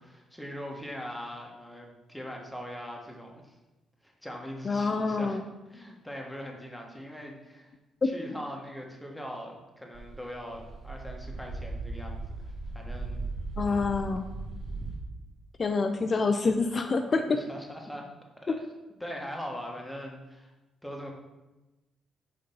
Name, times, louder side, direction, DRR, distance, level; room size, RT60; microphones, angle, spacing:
voice 1, 0.0-3.5 4.0-5.4 5.7-7.7 8.0-13.3 13.6-13.9 17.3-18.1 18.4-18.6 19.0-20.5 20.8-21.1, equal, 5° left, 0 dB, 1.4 m, -41 dB
voice 2, 4.6-5.4 8.0-8.1 13.6-14.3 15.6-17.4, left 4 dB, 40° left, 6 dB, 0.5 m, -26 dB
sound 1, 9.9-15.0, right 2 dB, 60° right, 1.9 m, -37 dB
5.2 x 4.3 x 5.4 m, 1.1 s
cardioid pair, 90°, 0 cm